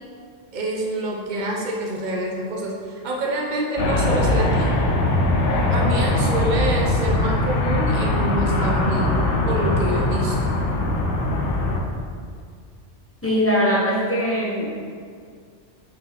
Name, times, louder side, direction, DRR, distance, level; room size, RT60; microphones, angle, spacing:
voice 1, 0.5-4.7 5.7-9.2 9.5-10.5, right 1 dB, 40° right, -2 dB, 1.1 m, -27 dB
sound 1, 3.8-11.8, left 1 dB, 70° left, 1.2 m, -21 dB
voice 2, 13.2-14.7, equal, 10° left, -5 dB, 1.1 m, -21 dB
6.1 x 5.0 x 6.0 m, 2.1 s
omnidirectional pair, 1.3 m